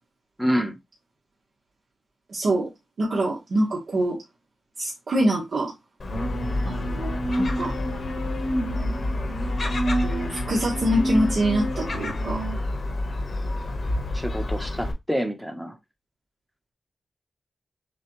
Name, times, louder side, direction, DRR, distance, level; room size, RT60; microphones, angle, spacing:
voice 1, 0.4-0.8 14.1-15.8, equal, ahead, 0.9 m, -27 dB
voice 2, 2.3-2.7 3.0-4.2 4.8-5.7 6.6-7.7 10.0-12.4, right 1 dB, 65° right, 1.3 m, -25 dB
Gull seagull, 6.0-14.9, left 2 dB, 50° left, 1.2 m, -29 dB
sound 1, 6.1-12.5, right 1 dB, 85° left, 1.7 m, -30 dB
6.6 x 2.3 x 3.0 m
wide cardioid pair, 125°, 0 cm